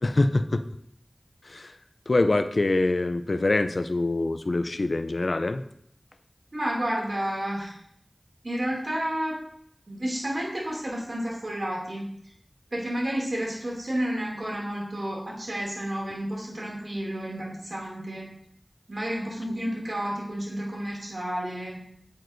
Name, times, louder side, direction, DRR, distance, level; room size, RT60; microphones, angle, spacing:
voice 1, 0.0-0.6 1.5-1.7 2.1-5.6, left 2 dB, 75° left, 10 dB, 0.5 m, -24 dB
voice 2, 6.5-7.8 8.4-9.4 9.9-12.1 12.7-18.3 18.9-21.9, right 1 dB, 65° right, -3 dB, 2.6 m, -31 dB
8.7 x 8.2 x 2.7 m, 0.72 s
wide cardioid pair, 55°, 0 cm